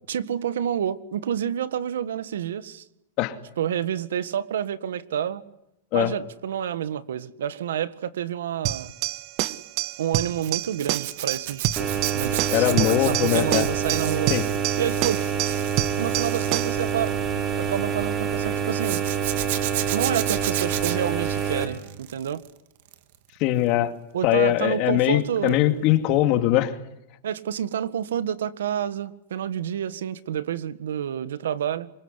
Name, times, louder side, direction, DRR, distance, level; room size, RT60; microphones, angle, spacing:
voice 1, 0.1-2.8 3.6-5.4 5.9-8.9 10.0-14.4 14.8-15.2 16.0-17.1 17.5-19.0 19.9-22.4 24.1-25.6 27.2-31.9, right 9 dB, 90° right, 14 dB, 1.7 m, -29 dB
sound 1, 8.6-16.8, right 15 dB, 50° right, 1.4 m, -28 dB
Zipper (clothing), 10.4-17.8 18.8-22.5 22.8-23.2 25.5-25.6 25.9-26.0, right 14 dB, 65° right, 2.5 m, -33 dB
sound 2, 11.8-21.7, right 7 dB, 30° right, 6.3 m, -27 dB
voice 2, 12.5-13.7 14.3-14.5 23.4-23.9 24.2-26.8, left 14 dB, 50° left, 9 dB, 2.6 m, -21 dB
26.0 x 22.0 x 10.0 m, 0.83 s
supercardioid pair, 135°, 0 cm